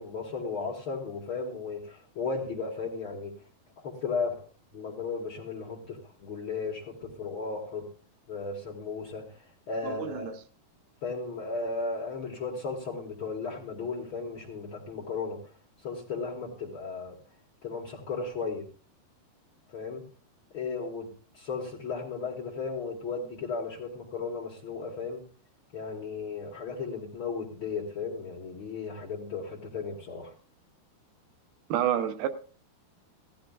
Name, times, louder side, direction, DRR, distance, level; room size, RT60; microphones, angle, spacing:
voice 1, 0.0-3.4 3.8-4.4 4.7-7.9 8.3-9.3 9.7-10.3 11.0-15.4 15.8-17.1 17.6-18.6 19.7-20.0 20.5-21.1 21.3-25.2 25.7-30.3, left 4 dB, 85° left, 1.1 m, -35 dB
voice 2, 9.8-10.4 31.7-32.3, right 10 dB, 75° right, 2.6 m, -29 dB
16.0 x 14.0 x 2.3 m
omnidirectional pair, 4.7 m